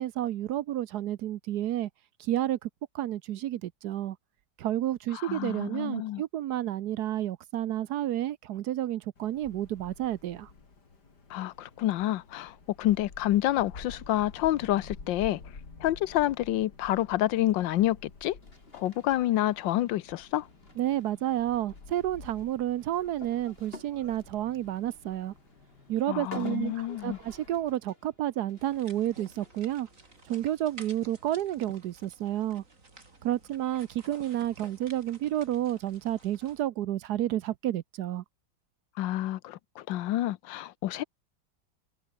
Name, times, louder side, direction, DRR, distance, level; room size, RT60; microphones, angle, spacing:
voice 1, 0.0-1.9 2.2-2.7 2.9-4.2 4.6-10.5 20.8-25.3 25.9-29.9 30.3-32.6 33.2-38.2, right 12 dB, 65° right, 1.1 m, -30 dB
voice 2, 5.1-6.2 11.3-15.4 15.8-18.4 18.7-20.5 26.1-27.2 39.0-41.0, left 14 dB, 85° left, 1.5 m, -28 dB
Wind, 9.2-27.7, left 4 dB, 60° left, 3.9 m, -51 dB
sound 1, 18.4-31.3, left 1 dB, 30° left, 6.5 m, -52 dB
sound 2, 28.6-36.6, right 3 dB, 45° right, 4.3 m, -53 dB
omnidirectional pair, 2.0 m